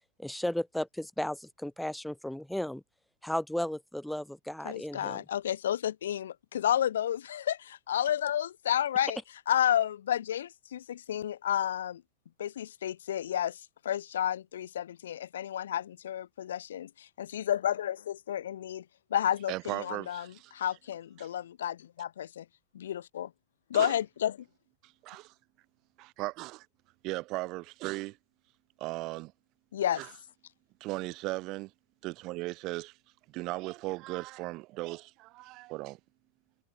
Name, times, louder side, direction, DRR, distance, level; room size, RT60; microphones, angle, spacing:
voice 1, 0.2-2.8 3.2-5.2, left 1 dB, ahead, 1.6 m, -34 dB
voice 2, 4.6-9.2 9.5-12.0 12.4-18.8 19.1-22.5 22.7-23.3 23.7-24.4 29.7-30.0, left 10 dB, 60° left, 3.5 m, -31 dB
voice 3, 19.5-20.5 21.2-21.3 23.7-23.9 24.8-25.3 26.0-26.7 27.0-28.2 28.8-29.3 30.0-30.1 30.8-31.7 32.0-33.0 33.3-36.0, right 21 dB, 40° right, 2.4 m, -37 dB
figure-of-eight pair, 90°, 0 cm